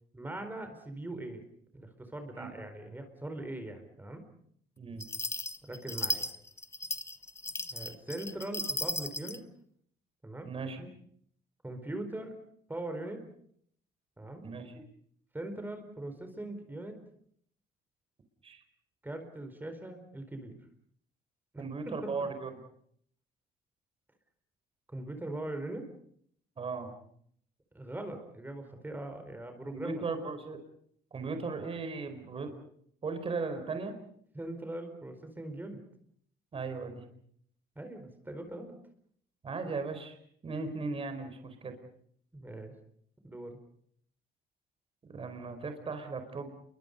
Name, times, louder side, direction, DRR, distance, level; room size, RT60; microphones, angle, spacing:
voice 1, 0.1-1.4 1.7-4.2 5.6-6.3 7.7-9.4 10.2-10.7 11.6-12.4 12.7-13.2 14.2-14.5 15.3-17.0 19.0-20.5 21.5-21.6 22.0-22.1 24.9-25.8 27.7-30.0 34.3-35.8 37.8-38.7 42.3-42.7 43.2-43.6, right 1 dB, 10° right, 7 dB, 4.4 m, -41 dB
sound 1, 5.0-9.4, left 2 dB, 15° left, 1.0 m, -36 dB
voice 2, 10.4-10.9 14.4-14.8 18.4-18.6 21.6-22.5 26.6-26.9 29.7-30.6 31.1-32.5 33.0-34.0 36.5-37.0 39.4-40.2 40.4-41.8 45.1-46.5, right 4 dB, 35° right, 7 dB, 4.7 m, -37 dB
28.5 x 23.5 x 5.3 m, 0.64 s
cardioid pair, 110°, 17 cm